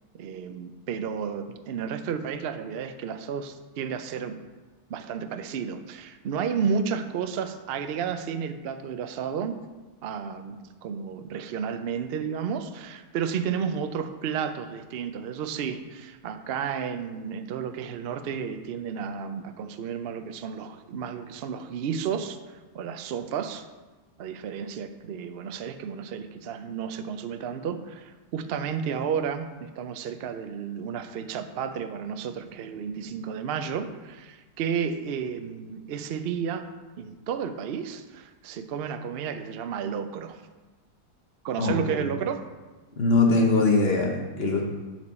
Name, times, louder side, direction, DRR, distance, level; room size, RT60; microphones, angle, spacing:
voice 1, 0.1-4.4 4.9-9.6 10.0-23.7 24.2-40.4 41.4-42.4, right 7 dB, 75° right, 9 dB, 0.5 m, -32 dB
voice 2, 41.6-42.0 43.0-44.6, left 3 dB, 45° left, 0 dB, 1.1 m, -22 dB
11.0 x 4.6 x 4.3 m, 1.2 s
omnidirectional pair, 1.7 m